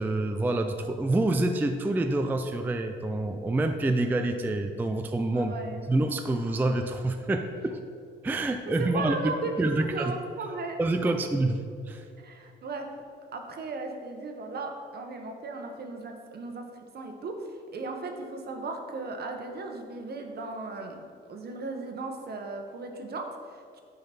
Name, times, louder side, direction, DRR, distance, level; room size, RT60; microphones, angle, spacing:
voice 1, 0.0-5.5 5.9-7.8 8.2-9.2 9.6-10.1 10.8-11.6 11.9-12.0, right 2 dB, 10° right, 6 dB, 0.3 m, -27 dB
voice 2, 5.3-5.8 8.8-10.8 11.0-11.1 12.2-12.9 13.3-23.8, right 3 dB, 55° right, 4 dB, 0.9 m, -36 dB
8.8 x 3.9 x 4.3 m, 2.3 s
cardioid pair, 90°, 20 cm